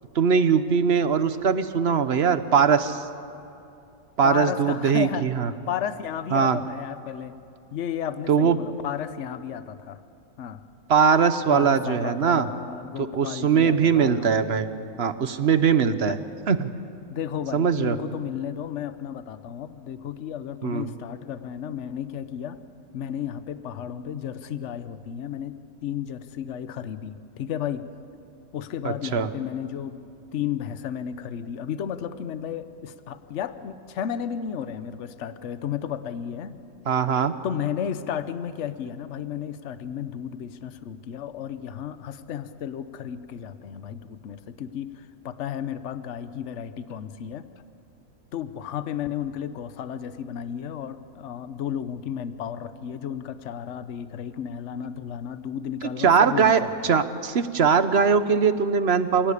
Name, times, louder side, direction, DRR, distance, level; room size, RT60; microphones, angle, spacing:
voice 1, 0.1-3.0 4.2-5.5 6.3-6.6 8.3-8.6 10.9-12.5 13.0-14.7 15.0-16.2 16.5-16.7 17.5-18.0 20.6-20.9 28.8-29.3 36.9-37.3 56.0-59.3, right 6 dB, 50° right, 12 dB, 1.0 m, -21 dB
voice 2, 4.2-5.3 5.7-7.3 7.7-10.0 10.4-10.6 11.5-14.4 16.0-16.2 17.1-22.6 22.9-27.9 28.5-30.0 30.3-36.6 37.4-47.4 48.3-57.0, left 9 dB, 55° left, 12 dB, 1.1 m, -33 dB
27.0 x 18.0 x 8.4 m, 2.7 s
omnidirectional pair, 1.6 m